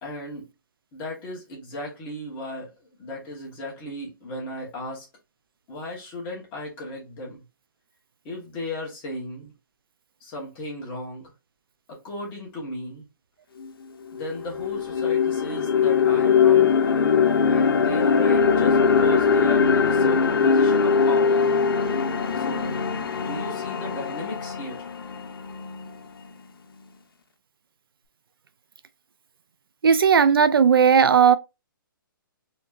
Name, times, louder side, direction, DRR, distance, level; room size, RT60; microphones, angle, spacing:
voice 1, 0.0-0.5 0.9-2.7 3.0-5.1 5.7-7.4 8.2-9.5 10.2-11.3 11.9-13.0 14.1-16.7 17.5-21.4 22.3-22.8 23.2-24.9, left 1 dB, 15° left, 1.1 m, -35 dB
sound 1, 13.6-13.7 14.1-26.2, left 6 dB, 85° left, 0.7 m, -21 dB
voice 2, 29.8-31.4, right 7 dB, 80° right, 0.5 m, -16 dB
4.4 x 2.8 x 2.4 m
hypercardioid pair, 170°, 12 cm